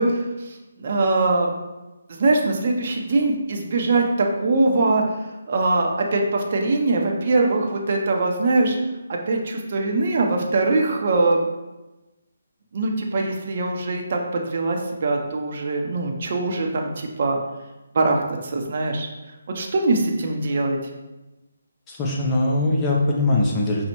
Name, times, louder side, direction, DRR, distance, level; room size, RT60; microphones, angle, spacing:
voice 1, 0.0-1.5 2.2-5.0 5.5-8.8 9.1-11.4 12.7-17.4 17.9-18.2 18.5-19.1 19.5-20.8, right 2 dB, 50° right, 1 dB, 0.5 m, -22 dB
voice 2, 21.9-23.9, left 2 dB, 20° left, -3 dB, 0.5 m, -21 dB
5.2 x 2.0 x 2.9 m, 1.0 s
figure-of-eight pair, 155°, 0 cm